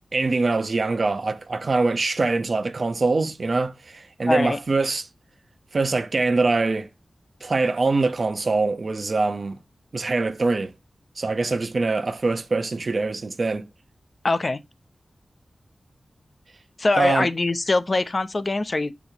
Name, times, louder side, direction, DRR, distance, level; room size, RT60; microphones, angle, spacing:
voice 1, 0.1-5.1 5.7-6.9 7.4-9.6 9.9-10.7 11.2-13.7 17.0-17.3, right 3 dB, 55° right, 0.9 m, -23 dB
voice 2, 4.3-4.6 14.2-14.6 16.8-18.9, left 2 dB, 40° left, 0.7 m, -22 dB
8.5 x 6.2 x 2.9 m
wide cardioid pair, 90°, 0 cm